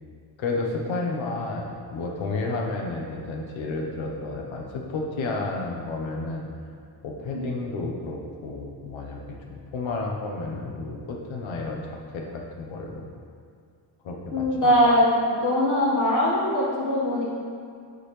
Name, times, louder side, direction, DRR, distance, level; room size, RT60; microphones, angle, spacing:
voice 1, 0.4-6.5 7.0-9.2 9.5-11.8 12.1-13.1 14.0-14.7, left 3 dB, 90° left, 0 dB, 1.1 m, -31 dB
voice 2, 14.3-17.2, equal, 40° left, -5 dB, 1.5 m, -21 dB
9.4 x 4.0 x 3.3 m, 2.2 s
wide cardioid pair, 155°, 45 cm